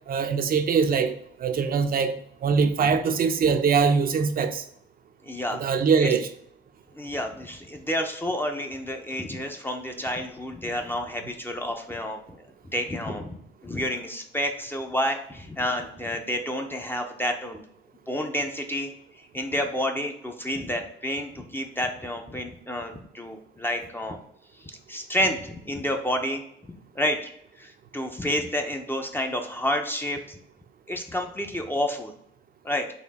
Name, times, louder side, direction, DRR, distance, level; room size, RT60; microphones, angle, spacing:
voice 1, 0.1-1.1 1.4-4.6 5.6-6.3, right 5 dB, 45° right, 0.6 m, -22 dB
voice 2, 5.2-5.6 6.0-6.1 6.9-13.3 13.6-17.6 18.1-24.2 24.6-26.4 26.9-27.3 27.6-30.4 30.9-32.1 32.6-32.9, left 1 dB, 10° left, 0.6 m, -30 dB
4.3 x 2.7 x 4.1 m
cardioid pair, 90°, 20 cm